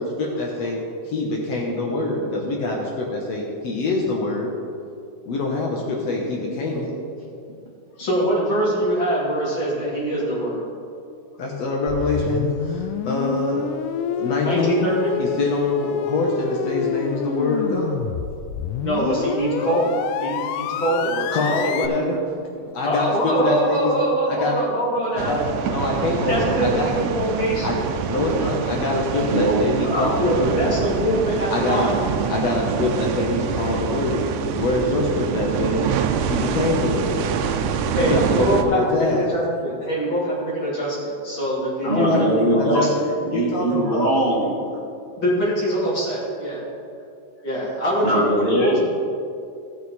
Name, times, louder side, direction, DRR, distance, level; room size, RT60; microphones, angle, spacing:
voice 1, 0.0-4.5 5.3-6.9 7.3-7.4 11.4-13.7 14.1-14.9 15.2-17.9 18.6-18.7 20.3-20.4 21.3-22.2 22.6-23.9 24.3-24.6 25.1-25.4 25.7-26.9 27.6-30.7 31.5-31.9 32.3-34.2 34.6-36.0 36.3-37.6 38.0-39.2 41.8-44.1, left 2 dB, 65° left, -2 dB, 1.8 m, -24 dB
voice 2, 8.0-10.6 14.4-15.1 18.8-19.9 20.2-22.1 22.8-25.4 26.3-27.8 30.2-31.9 37.9-38.8 39.1-42.9 45.2-46.6 47.4-48.8, equal, 35° left, -7 dB, 2.9 m, -23 dB
sound 1, 11.9-21.9, left 9 dB, 85° left, 1.8 m, -28 dB
sound 2, 25.2-38.6, right 7 dB, 80° right, 1.9 m, -25 dB
voice 3, 29.3-30.1 41.8-43.0 43.2-44.7 48.0-48.8, right 1 dB, 60° right, -7 dB, 0.6 m, -21 dB
16.0 x 6.5 x 4.2 m, 2.5 s
omnidirectional pair, 4.0 m